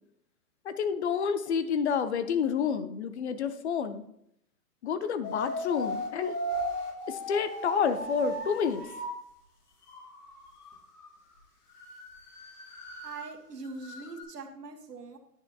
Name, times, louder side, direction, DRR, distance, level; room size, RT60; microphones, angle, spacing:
voice 1, 0.6-4.0 4.8-6.3 7.1-8.8, left 6 dB, 45° left, 11 dB, 0.7 m, -29 dB
sound 1, 5.2-9.1 9.9-11.1 11.4-11.5 11.7-13.3 13.6-14.2, equal, 70° left, 2.5 m, -37 dB
voice 2, 13.0-15.2, right 3 dB, 80° right, 4 dB, 1.5 m, -42 dB
9.9 x 6.3 x 2.8 m, 0.73 s
hypercardioid pair, 135°, 47 cm